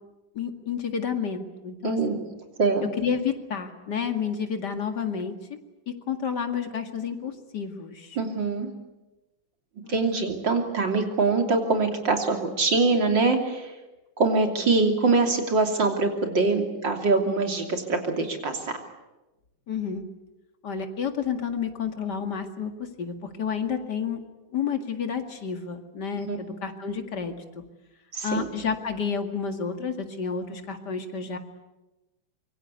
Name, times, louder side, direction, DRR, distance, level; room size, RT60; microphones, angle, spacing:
voice 1, 0.4-2.0 3.0-5.3 6.1-8.2 9.8-9.9 19.7-20.0 20.6-22.7 23.0-24.2 24.5-27.3 28.2-31.4, left 6 dB, 60° left, 6 dB, 2.7 m, -30 dB
voice 2, 1.8-2.2 2.6-2.8 8.2-8.7 9.9-13.7 14.2-18.6 26.3-26.4 28.1-28.5, right 3 dB, 65° right, 4 dB, 3.7 m, -23 dB
25.5 x 23.0 x 8.3 m, 1.0 s
omnidirectional pair, 2.1 m